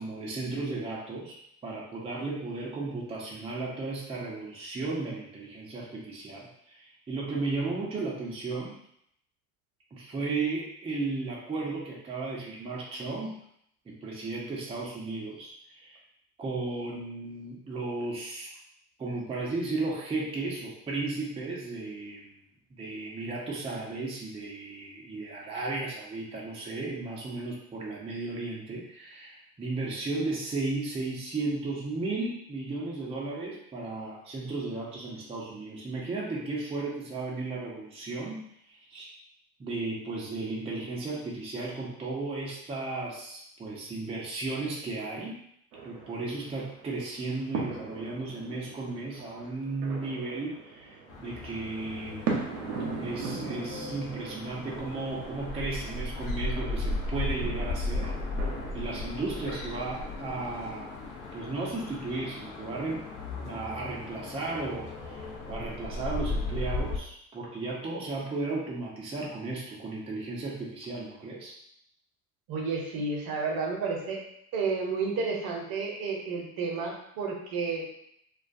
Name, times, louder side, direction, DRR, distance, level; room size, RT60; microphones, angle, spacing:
voice 1, 0.0-1.4 1.6-8.7 9.9-13.3 13.9-16.0 16.4-18.5 19.0-22.3 22.8-38.4 38.7-39.1 39.6-45.4 45.8-52.4 52.9-58.1 58.7-60.9 61.3-63.1 63.3-71.5, right 3 dB, 15° right, -4 dB, 0.5 m, -35 dB
sound 1, 45.7-60.6, right 4 dB, 85° right, 0.7 m, -40 dB
sound 2, 51.1-67.0, left 2 dB, 45° left, 0.6 m, -36 dB
voice 2, 72.5-74.2 74.5-77.9, right 4 dB, 50° right, 0 dB, 0.8 m, -31 dB
2.2 x 2.2 x 2.5 m, 0.72 s
hypercardioid pair, 75°, 45 cm